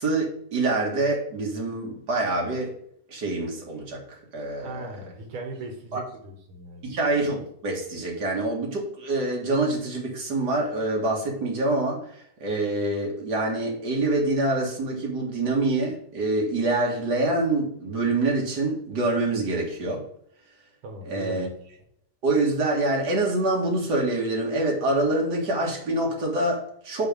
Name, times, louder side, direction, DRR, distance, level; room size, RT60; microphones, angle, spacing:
voice 1, 0.0-2.8 3.1-4.9 5.9-6.0 6.8-20.1 21.0-21.5 22.2-27.1, right 2 dB, 55° right, -2 dB, 2.4 m, -26 dB
voice 2, 4.6-6.9 20.8-21.6, right 2 dB, 85° right, 2 dB, 2.0 m, -38 dB
8.1 x 3.6 x 5.2 m, 0.67 s
omnidirectional pair, 2.2 m